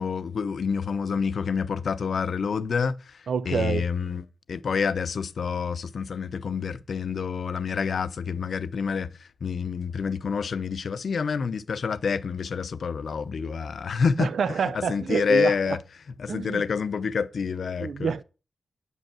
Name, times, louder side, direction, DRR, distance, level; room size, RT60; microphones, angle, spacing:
voice 1, 0.0-14.3 14.7-15.8 16.2-18.1, left 5 dB, 75° left, 0.7 m, -28 dB
voice 2, 3.3-3.8 14.2-15.8 16.3-16.6 17.8-18.2, right 6 dB, 90° right, 0.6 m, -27 dB
9.4 x 5.4 x 7.4 m
wide cardioid pair, 100°, 0 cm